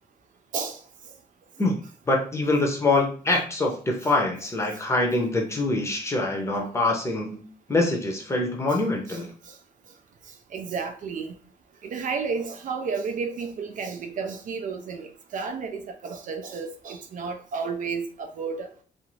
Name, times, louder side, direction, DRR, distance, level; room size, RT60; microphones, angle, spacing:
voice 1, 2.1-7.4 7.7-9.3, left 2 dB, 20° left, 0.6 m, -24 dB
voice 2, 10.5-11.3 11.8-18.7, right 5 dB, 60° right, 0.4 m, -32 dB
2.5 x 2.4 x 3.0 m
wide cardioid pair, 150°, 15 cm